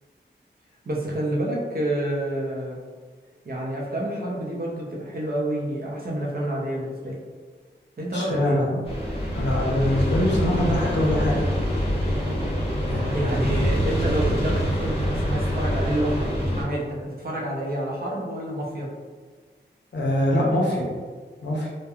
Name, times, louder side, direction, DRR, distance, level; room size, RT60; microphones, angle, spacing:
voice 1, 0.8-2.8 3.4-7.2 8.0-8.6 12.9-18.9, right 1 dB, 55° right, -3 dB, 0.6 m, -28 dB
voice 2, 8.1-8.8 9.3-11.5 12.9-13.4 19.9-20.8 21.4-21.7, left 1 dB, 70° left, -4 dB, 0.7 m, -24 dB
sound 1, 8.9-16.6, equal, 30° left, 0.9 m, -25 dB
2.9 x 2.2 x 2.3 m, 1.5 s
wide cardioid pair, 70°, 19 cm